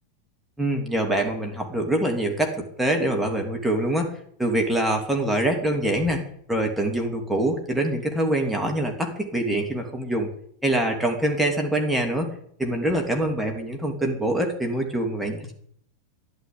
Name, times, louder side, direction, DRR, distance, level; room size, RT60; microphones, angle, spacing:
voice 1, 0.6-10.3 10.6-15.5, right 1 dB, ahead, 1 dB, 3.0 m, -25 dB
13.5 x 11.0 x 8.6 m, 0.66 s
figure-of-eight pair, 90°, 0 cm